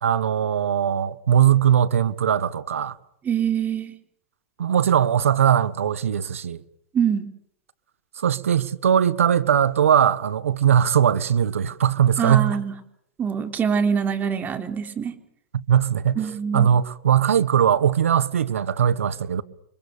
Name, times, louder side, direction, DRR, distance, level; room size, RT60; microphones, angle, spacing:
voice 1, 0.0-3.0 4.6-6.6 8.2-12.6 15.5-16.2 16.5-19.4, right 9 dB, 85° right, 1.5 m, -20 dB
voice 2, 3.2-3.9 6.9-7.3 12.2-12.7 13.2-15.1 16.2-16.7, right 7 dB, 25° right, 3.9 m, -24 dB
29.5 x 25.0 x 6.9 m
hypercardioid pair, 115°, 7 cm